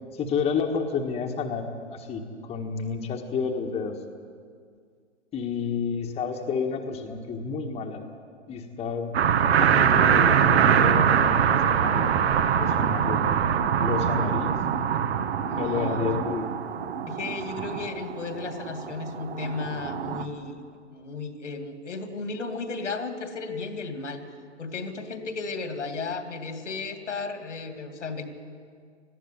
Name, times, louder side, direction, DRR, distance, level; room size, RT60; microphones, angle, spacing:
voice 1, 0.1-1.6 1.9-4.0 5.3-8.0 8.5-9.1 9.6-12.1 12.6-13.2 13.8-14.6 15.6-16.5, left 5 dB, 15° left, 3 dB, 1.5 m, -30 dB
sound 1, 9.1-20.2, right 8 dB, 60° right, 1.5 m, -23 dB
voice 2, 12.5-13.0 15.5-16.2 17.1-20.6 20.9-24.2 24.6-28.2, left 4 dB, 75° left, 7 dB, 2.6 m, -34 dB
18.5 x 14.5 x 9.7 m, 2.1 s
figure-of-eight pair, 125°, 36 cm